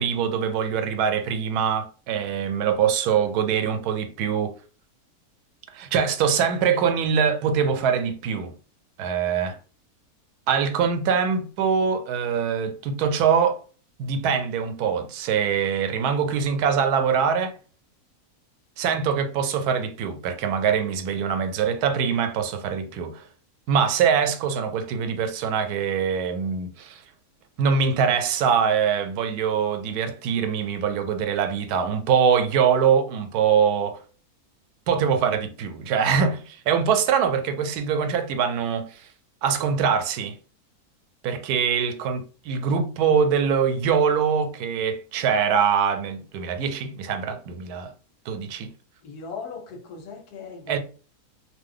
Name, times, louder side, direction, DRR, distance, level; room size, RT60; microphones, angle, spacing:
voice 1, 0.0-4.6 5.7-8.5 9.0-9.6 10.5-13.6 14.0-17.6 18.8-23.2 23.7-27.0 27.6-34.0 34.9-39.0 39.4-40.4 41.2-47.9 48.3-48.7 50.7-50.8, right 7 dB, 90° right, 1.1 m, -23 dB
voice 2, 49.0-50.8, left 5 dB, 80° left, 1.2 m, -38 dB
2.7 x 2.1 x 3.7 m
omnidirectional pair, 1.6 m